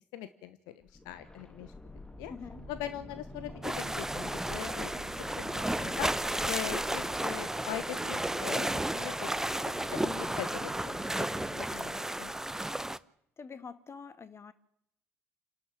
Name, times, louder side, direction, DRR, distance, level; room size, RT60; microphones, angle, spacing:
voice 1, 0.1-1.7 2.2-2.3 2.7-6.1 6.4-8.7 8.9-9.3 9.8-10.9 11.5-11.9 12.2-12.3, left 12 dB, 65° left, 1.1 m, -41 dB
sound 1, 0.8-8.6 8.9-9.0, left 2 dB, 10° left, 1.6 m, -48 dB
voice 2, 2.3-2.7 13.4-14.5, left 5 dB, 35° left, 1.9 m, -45 dB
sound 2, 2.5-12.1, right 1 dB, 85° right, 2.1 m, -55 dB
sound 3, 3.6-13.0, right 1 dB, 5° right, 1.0 m, -33 dB
28.5 x 12.0 x 7.5 m
figure-of-eight pair, 50°, 7 cm